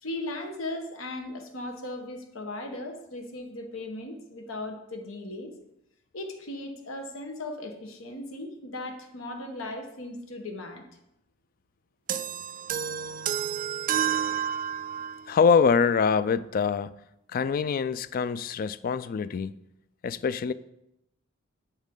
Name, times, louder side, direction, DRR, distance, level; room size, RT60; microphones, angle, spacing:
voice 1, 0.0-5.5 6.1-10.8, left 2 dB, 90° left, 1.3 m, -37 dB
sound 1, 12.1-15.3, right 9 dB, 45° right, 0.3 m, -30 dB
voice 2, 15.3-16.9 17.3-19.5 20.0-20.5, left 6 dB, 45° left, 0.3 m, -24 dB
8.2 x 7.3 x 3.8 m
head